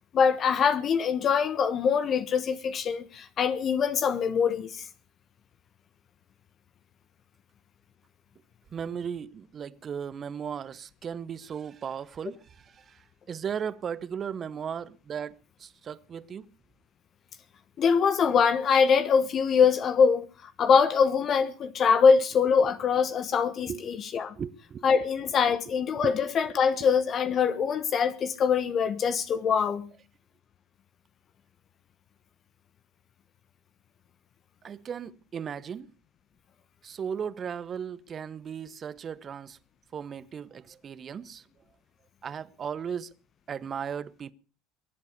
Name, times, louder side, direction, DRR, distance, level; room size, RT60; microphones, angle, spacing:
voice 1, 0.1-4.9 17.8-24.3 24.8-29.9, left 6 dB, 45° left, 1.2 m, -23 dB
voice 2, 8.7-13.0 13.3-16.5 23.7-23.8 24.4-24.9 26.0-26.2 34.6-35.9 36.8-39.6 39.9-41.4 42.2-43.1 43.5-44.3, right 7 dB, 40° right, 1.0 m, -36 dB
22.5 x 8.1 x 6.7 m
hypercardioid pair, 75°, 0 cm